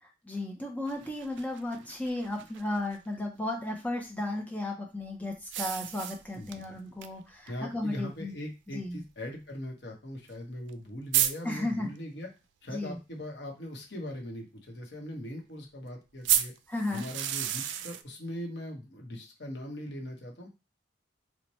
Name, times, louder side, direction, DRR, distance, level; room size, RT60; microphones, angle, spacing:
voice 1, 0.0-8.3 8.7-9.0 11.4-11.9 12.7-13.0 16.7-17.1, left 1 dB, 10° left, 1 dB, 0.5 m, -34 dB
sound 1, 0.9-3.0 5.5-6.6 7.0-7.1 7.5-7.6 8.5-8.6 10.4-10.5 10.7-10.8 11.1-11.3 16.2-18.0, right 11 dB, 75° right, 0.3 m, -31 dB
voice 2, 7.5-12.3 12.6-16.5 16.9-20.5, left 1 dB, 60° left, 1 dB, 0.9 m, -40 dB
3.0 x 2.1 x 4.1 m, 0.28 s
head